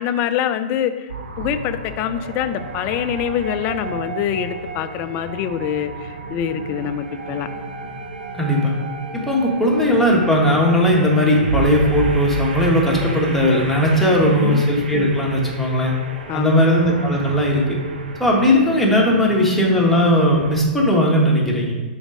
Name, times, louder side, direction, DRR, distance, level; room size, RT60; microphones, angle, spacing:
voice 1, 0.0-7.5 14.1-14.6 16.3-16.6, left 9 dB, 35° left, 11 dB, 0.4 m, -25 dB
sound 1, 1.1-20.7, right 3 dB, 80° right, 0.8 m, -31 dB
voice 2, 8.3-8.7 9.1-15.9 16.3-17.8 18.2-21.7, equal, 5° left, -3 dB, 1.4 m, -17 dB
5.1 x 4.2 x 4.9 m, 1.3 s
hypercardioid pair, 110°, 5 cm